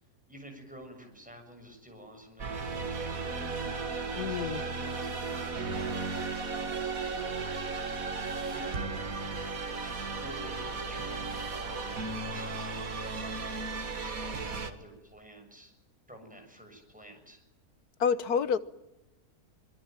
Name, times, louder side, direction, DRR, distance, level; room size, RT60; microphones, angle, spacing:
voice 1, 0.3-7.4 8.5-9.0 9.7-13.6 14.0-15.7 16.1-17.4, equal, 5° right, 3 dB, 7.1 m, -51 dB
sound 1, 2.4-14.7, right 4 dB, 65° right, 2.3 m, -35 dB
voice 2, 4.2-4.6 18.0-18.6, left 7 dB, 75° left, 14 dB, 1.7 m, -28 dB
25.0 x 22.0 x 9.1 m, 0.95 s
omnidirectional pair, 1.6 m